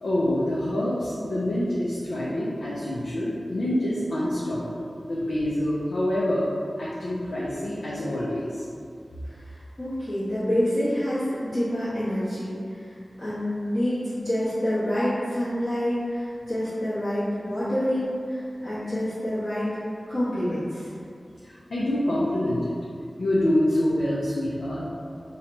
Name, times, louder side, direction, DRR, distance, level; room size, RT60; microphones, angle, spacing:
voice 1, 0.0-6.5 6.8-8.6 21.7-22.7 23.2-24.9, left 1 dB, 85° left, -7 dB, 0.4 m, -26 dB
voice 2, 9.8-12.5 12.8-12.9 13.2-19.7 20.1-20.9, equal, 30° left, -15 dB, 1.0 m, -27 dB
2.7 x 2.2 x 3.9 m, 2.4 s
wide cardioid pair, 90°, 0 cm